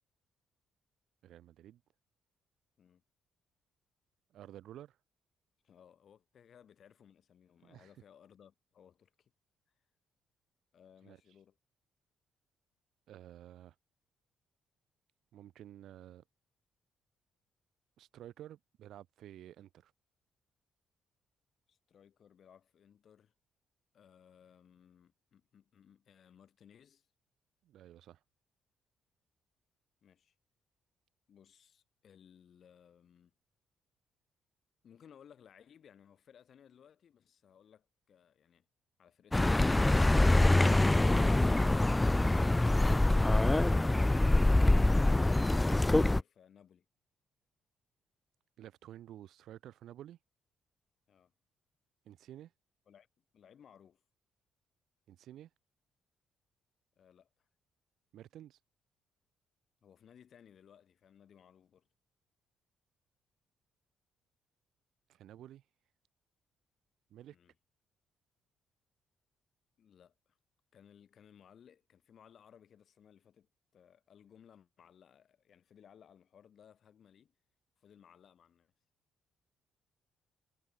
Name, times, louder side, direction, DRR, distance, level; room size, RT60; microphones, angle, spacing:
voice 1, 1.2-1.8 4.3-5.0 7.6-7.9 11.1-11.2 13.1-13.8 15.3-16.2 18.0-19.9 27.6-28.2 48.6-50.2 52.1-52.5 55.1-55.5 58.1-58.6 65.1-65.6 67.1-67.4, right 12 dB, 75° right, 3.5 m, -52 dB
voice 2, 5.6-9.3 10.7-11.6 21.7-23.3 23.9-27.1 30.0-30.3 31.3-33.3 34.8-38.7 39.0-39.8 51.1-51.3 52.9-53.1 53.3-54.0 57.0-57.3 59.8-61.9 67.3-67.5 69.8-70.4 70.7-77.3 77.8-78.7, left 8 dB, 50° left, 6.1 m, -61 dB
Accelerating revving vroom, 39.3-46.2, left 2 dB, 10° left, 0.4 m, -25 dB
cardioid pair, 125°, 0 cm